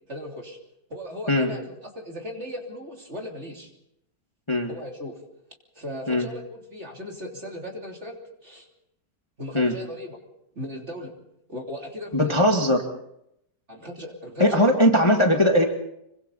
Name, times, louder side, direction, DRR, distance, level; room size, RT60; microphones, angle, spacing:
voice 1, 0.1-0.6 0.9-3.7 4.7-5.2 5.8-8.7 9.4-10.2 10.6-11.1 11.5-12.4 13.7-14.7, left 1 dB, 40° right, 1 dB, 3.6 m, -37 dB
voice 2, 12.1-12.8 14.4-15.6, equal, 15° left, 2 dB, 1.9 m, -19 dB
26.5 x 24.0 x 4.2 m, 0.78 s
omnidirectional pair, 1.9 m